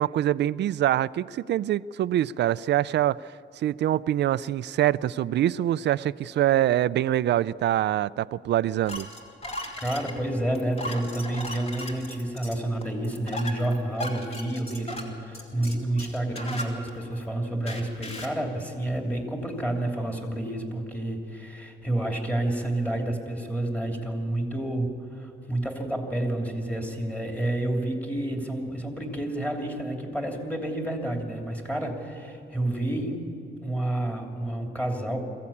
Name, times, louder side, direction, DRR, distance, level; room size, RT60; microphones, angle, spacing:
voice 1, 0.0-9.1, right 12 dB, 65° right, 0.4 m, -25 dB
sound 1, 8.9-17.2 17.7-18.4, left 1 dB, 30° left, 2.6 m, -37 dB
voice 2, 9.8-33.3 33.6-35.2, right 1 dB, 5° left, 2.9 m, -29 dB
22.5 x 15.5 x 8.6 m
cardioid pair, 130°, 19 cm